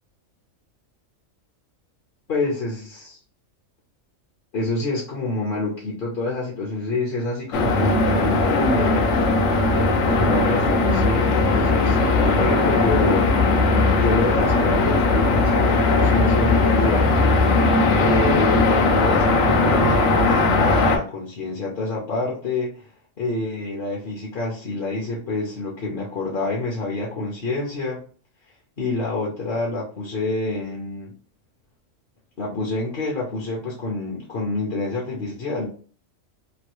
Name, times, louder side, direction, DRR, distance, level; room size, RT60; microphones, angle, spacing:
voice 1, 2.3-3.2 4.5-9.2 10.1-13.6 13.9-17.1 17.9-22.9 23.2-28.0 28.8-31.1 32.4-35.7, left 2 dB, 45° left, -3 dB, 0.9 m, -27 dB
sound 1, 7.5-21.0, left 3 dB, 70° left, 1.0 m, -18 dB
3.0 x 2.6 x 3.0 m, 0.42 s
omnidirectional pair, 1.4 m